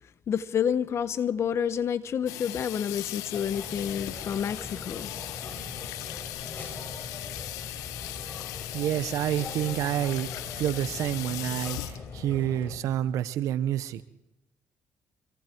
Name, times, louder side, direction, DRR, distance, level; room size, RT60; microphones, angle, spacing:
voice 1, 0.3-5.1, left 8 dB, 55° left, 1.2 m, -29 dB
Water tap faucet / Sink (filling or washing), 2.3-13.2, left 15 dB, 90° left, 1.0 m, -39 dB
sound 1, 3.3-12.8, left 3 dB, 40° left, 6.7 m, -42 dB
voice 2, 8.7-10.3 10.6-14.0, right 12 dB, 80° right, 1.0 m, -28 dB
25.5 x 22.5 x 4.7 m
supercardioid pair, 75°, 5 cm